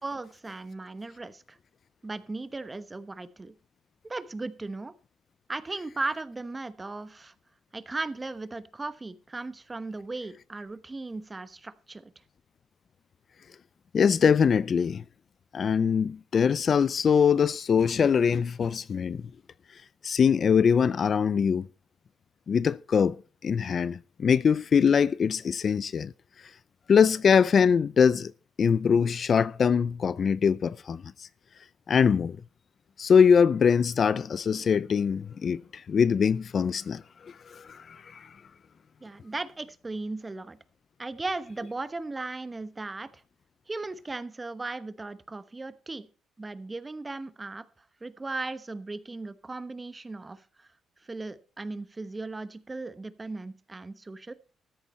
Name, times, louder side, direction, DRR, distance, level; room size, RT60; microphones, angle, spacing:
voice 1, 0.0-1.6 2.0-3.5 4.0-4.9 5.5-7.3 7.7-12.1 39.0-40.6 41.0-43.1 43.7-46.1 46.4-47.6 48.0-50.7 51.1-54.3, right 3 dB, 20° right, 1.0 m, -37 dB
voice 2, 13.9-15.0 15.5-19.2 20.0-21.7 22.5-26.1 26.9-28.3 28.6-31.3 31.9-32.4 33.0-38.3, left 6 dB, 50° left, 0.5 m, -23 dB
13.5 x 9.6 x 4.2 m
cardioid pair, 90°, 0 cm